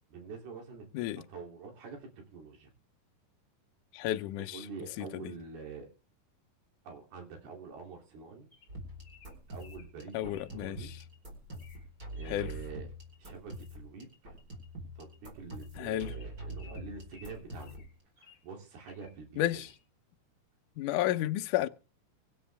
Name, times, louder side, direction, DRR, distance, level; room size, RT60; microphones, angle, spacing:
voice 1, 0.1-0.9 1.2-2.7 4.4-5.9 6.8-8.5 9.5-11.0 12.2-12.9 13.2-14.4 15.0-17.8 18.2-19.6, right 5 dB, 75° right, 4.9 m, -46 dB
voice 2, 3.9-4.6 5.0-5.2 10.1-10.9 12.3-12.5 15.8-16.1 19.4-19.7 20.8-21.7, left 14 dB, 80° left, 1.8 m, -32 dB
Bird vocalization bird call bird song, 8.5-11.0 11.5-11.8 12.1-12.4 13.9-14.1 14.4-14.5 14.8-15.0 15.4-15.5 16.0-18.4 18.8-19.2 19.6-19.8, left 5 dB, 20° left, 5.7 m, -60 dB
sound 1, 8.7-17.9, right 1 dB, 20° right, 4.3 m, -45 dB
24.0 x 9.3 x 3.4 m
omnidirectional pair, 4.6 m